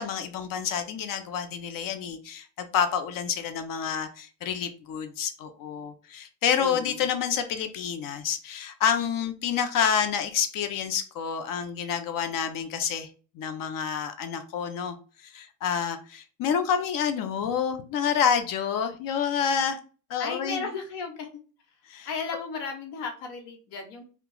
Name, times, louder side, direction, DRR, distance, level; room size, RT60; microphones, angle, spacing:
voice 1, 0.0-13.1 13.3-19.8 20.1-20.7 21.9-22.1, left 7 dB, 50° left, 8 dB, 0.7 m, -28 dB
voice 2, 6.6-7.0 20.2-21.3 22.0-24.0, left 4 dB, 70° left, 4 dB, 1.1 m, -34 dB
2.8 x 2.3 x 3.8 m, 0.38 s
supercardioid pair, 90°, 44 cm